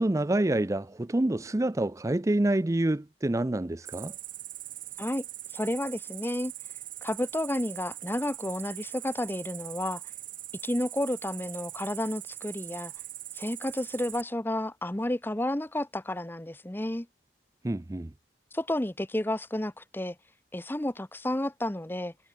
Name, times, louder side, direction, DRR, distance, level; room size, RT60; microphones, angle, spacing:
voice 1, 0.0-4.1 17.6-18.1, right 1 dB, 20° right, 0.5 m, -27 dB
Cricket, 3.8-14.2, right 14 dB, 50° right, 2.6 m, -42 dB
voice 2, 5.5-6.5 7.0-10.0 10.6-12.9 13.3-17.1 18.5-20.2 20.5-22.1, left 1 dB, 10° left, 0.8 m, -31 dB
head